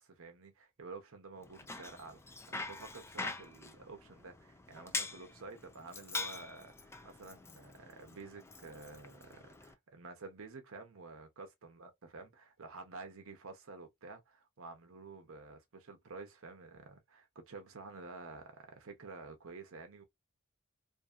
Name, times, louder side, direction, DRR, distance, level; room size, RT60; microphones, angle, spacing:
voice 1, 0.0-2.4 2.7-20.0, right 3 dB, 70° right, 0.7 m, -50 dB
Bicycle, 1.4-9.7, left 3 dB, 10° left, 0.3 m, -44 dB
2.6 x 2.6 x 2.3 m
head